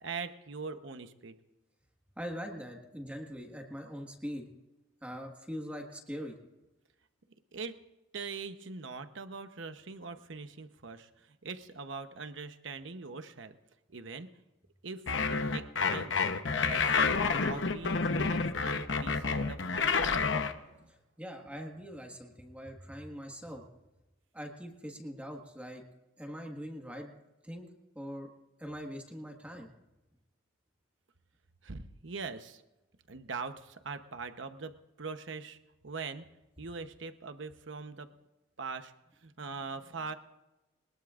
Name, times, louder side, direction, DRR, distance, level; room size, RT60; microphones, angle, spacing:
voice 1, 0.0-1.4 7.5-7.8 8.1-13.5 13.9-14.3 14.8-16.2 16.5-17.0 17.3-20.9 31.6-32.6 33.1-35.6 35.8-36.3 36.6-38.1 38.6-38.9 39.2-40.2, right 4 dB, 70° right, 9 dB, 0.9 m, -42 dB
voice 2, 2.2-4.5 5.0-6.4 20.9-23.6 24.3-25.8 26.2-27.1 27.4-27.7 28.0-28.3 28.6-29.7, equal, 5° right, 1 dB, 1.6 m, -42 dB
sound 1, 15.1-20.5, left 4 dB, 65° left, 0.9 m, -29 dB
21.5 x 20.5 x 2.5 m, 1.0 s
head